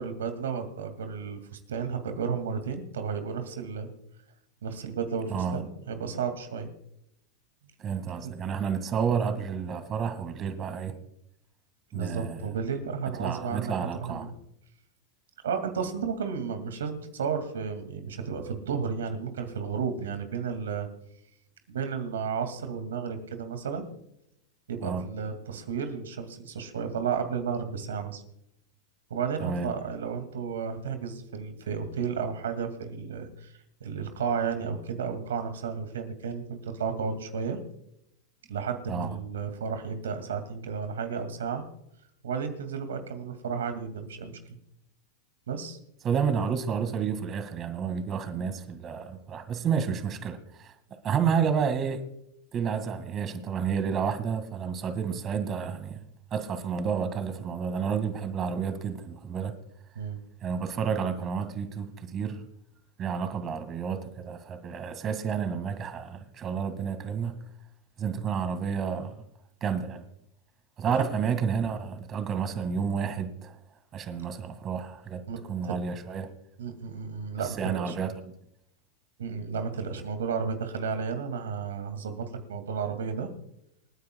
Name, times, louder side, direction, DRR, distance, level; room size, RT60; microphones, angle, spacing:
voice 1, 0.0-3.9 4.6-6.7 8.2-8.3 11.9-13.7 14.0-14.3 15.4-20.9 21.7-23.9 24.7-28.2 29.1-33.5 33.8-37.6 38.5-41.6 42.2-44.6 45.5-45.8 60.0-60.2 75.3-75.8 76.6-78.0 79.2-83.3, right 6 dB, 85° right, 2.3 m, -33 dB
voice 2, 5.3-5.6 7.8-11.0 11.9-12.4 13.2-14.2 24.8-25.0 29.4-29.7 38.9-39.1 46.0-50.7 51.0-52.0 52.5-56.0 56.3-59.5 60.4-62.4 63.0-67.4 68.0-69.2 69.6-70.0 70.8-73.5 73.9-75.2 75.5-76.3 77.4-78.3, right 6 dB, 35° right, 2.0 m, -30 dB
28.5 x 9.7 x 2.3 m
hypercardioid pair, 105°, 0 cm